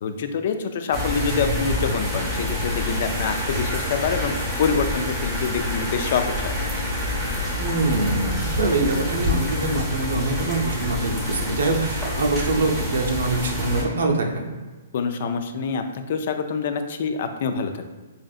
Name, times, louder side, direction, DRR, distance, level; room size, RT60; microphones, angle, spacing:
voice 1, 0.0-4.3 4.6-6.5 14.9-17.7, left 5 dB, 50° left, 7 dB, 0.3 m, -26 dB
sound 1, 0.9-13.8, left 1 dB, 5° right, 0.8 m, -27 dB
voice 2, 7.6-14.5, right 3 dB, 80° right, 1 dB, 0.7 m, -24 dB
4.9 x 2.6 x 2.4 m, 1.3 s
hypercardioid pair, 165°, 0 cm